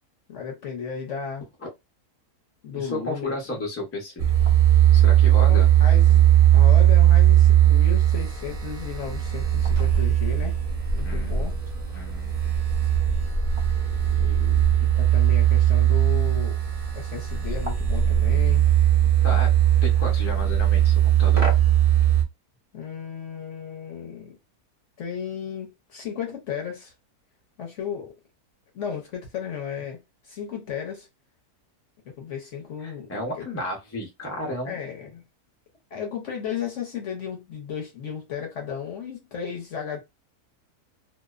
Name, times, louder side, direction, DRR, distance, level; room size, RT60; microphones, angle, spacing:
voice 1, 0.3-1.5 2.6-3.6 5.5-6.2 6.5-10.6 10.9-11.5 13.7-16.6 16.9-18.7 19.3-19.4 22.7-24.3 25.0-26.9 27.6-28.2 28.7-30.0 30.2-31.1 32.0-33.5 34.6-35.2 35.9-40.0, left 7 dB, 60° left, 0.9 m, -34 dB
voice 2, 2.7-4.3 4.9-5.7 11.0-11.6 11.9-12.5 19.2-19.5 19.8-21.5 32.8-34.8, left 1 dB, 20° left, 0.4 m, -33 dB
sound 1, 4.2-22.2, right 11 dB, 70° right, 0.3 m, -19 dB
2.6 x 2.0 x 2.3 m
omnidirectional pair, 1.7 m